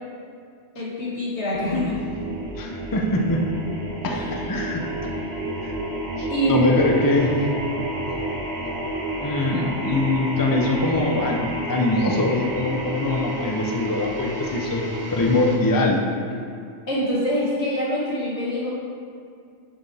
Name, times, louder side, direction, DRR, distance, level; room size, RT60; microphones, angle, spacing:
voice 1, 0.8-1.9 4.1-5.0 6.3-6.6 16.9-18.7, equal, 85° left, -6 dB, 2.3 m, -26 dB
sound 1, 1.5-15.6, right 1 dB, 80° right, 2.2 m, -30 dB
voice 2, 2.6-3.6 4.0-4.8 5.6-5.7 6.2-7.5 8.0-8.2 8.7-8.8 9.2-14.8 15.1-16.0, left 2 dB, 20° left, 0 dB, 0.7 m, -23 dB
9.3 x 6.5 x 3.4 m, 2.3 s
omnidirectional pair, 1.1 m